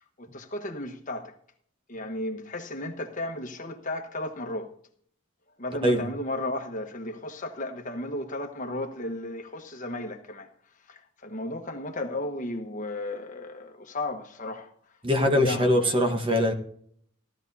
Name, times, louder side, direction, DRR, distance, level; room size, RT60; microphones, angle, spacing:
voice 1, 0.2-1.3 1.9-4.7 5.6-10.5 10.9-14.7 15.2-16.2, left 1 dB, 35° left, 1.2 m, -34 dB
voice 2, 15.0-16.5, left 1 dB, 25° right, 1.2 m, -22 dB
15.5 x 12.0 x 2.8 m
head